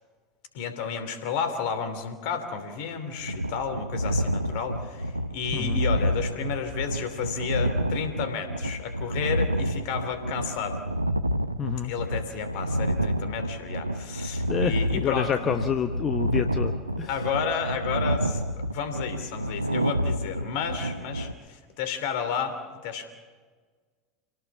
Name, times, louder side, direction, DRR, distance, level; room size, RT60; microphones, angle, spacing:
voice 1, 0.5-10.8 11.8-15.3 17.1-23.1, left 6 dB, 55° left, 9 dB, 2.9 m, -32 dB
sound 1, 3.2-21.3, equal, 90° right, 0.7 m, -29 dB
voice 2, 5.5-5.8 11.6-11.9 14.5-17.1, left 8 dB, 35° left, 8 dB, 1.0 m, -28 dB
27.5 x 18.0 x 7.0 m, 1.5 s
figure-of-eight pair, 75°, 0 cm